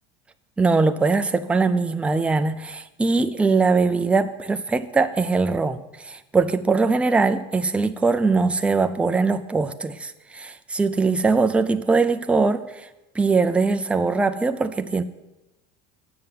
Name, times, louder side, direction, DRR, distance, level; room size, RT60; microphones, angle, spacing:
voice 1, 0.6-12.6 13.2-15.0, right 4 dB, 5° right, 8 dB, 0.3 m, -21 dB
9.5 x 6.7 x 7.2 m, 1.0 s
cardioid pair, 140°, 31 cm